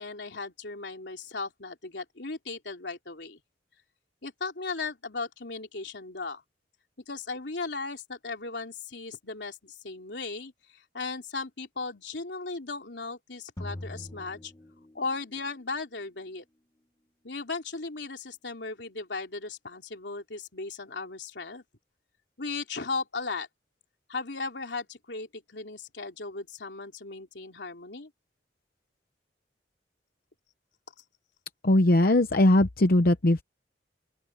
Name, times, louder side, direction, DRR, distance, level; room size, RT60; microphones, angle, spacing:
voice 1, 0.0-3.4 4.2-6.4 7.1-14.5 14.9-16.4 17.2-21.6 22.4-23.5 24.1-28.1, left 3 dB, 85° left, 3.2 m, -36 dB
sound 1, 13.6-15.4, left 1 dB, 20° left, 1.1 m, -42 dB
voice 2, 31.6-33.4, left 1 dB, 55° left, 0.9 m, -20 dB
open air
head